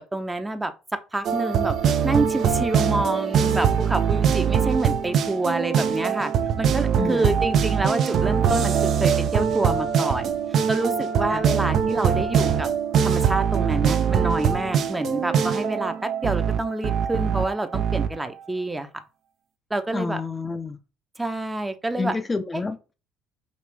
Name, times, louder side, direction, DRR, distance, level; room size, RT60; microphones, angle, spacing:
voice 1, 0.0-1.8 2.0-6.3 6.6-10.3 10.7-12.7 13.0-18.9 19.7-20.2 21.2-22.1 22.5-22.6, right 2 dB, 15° right, 0.7 m, -27 dB
sound 1, 1.2-18.1, right 7 dB, 55° right, 0.5 m, -22 dB
voice 2, 7.0-7.3 11.3-11.4 19.9-20.8 22.0-22.9, left 4 dB, 25° left, 0.5 m, -29 dB
5.1 x 2.5 x 3.2 m
hypercardioid pair, 70°, 0 cm